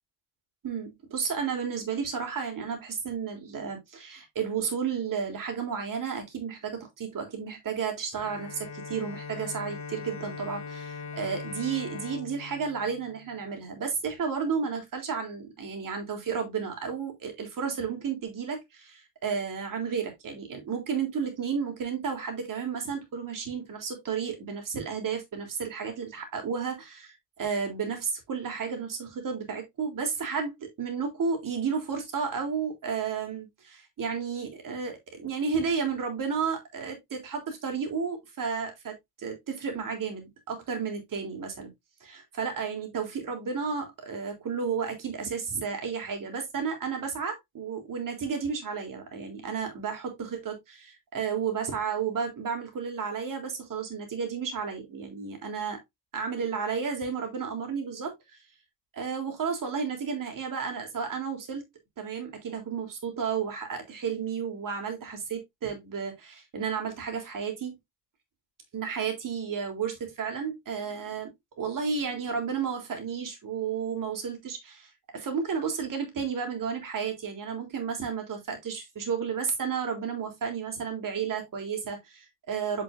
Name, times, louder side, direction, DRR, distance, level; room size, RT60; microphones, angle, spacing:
voice 1, 0.6-41.7 42.0-55.8 56.1-58.1 58.9-61.7 62.0-67.7 68.7-82.8, right 6 dB, 50° right, 3.5 m, -32 dB
Bowed string instrument, 8.2-13.8, left 5 dB, 45° left, 2.5 m, -41 dB
9.0 x 5.9 x 2.6 m
cardioid pair, 110°, 40 cm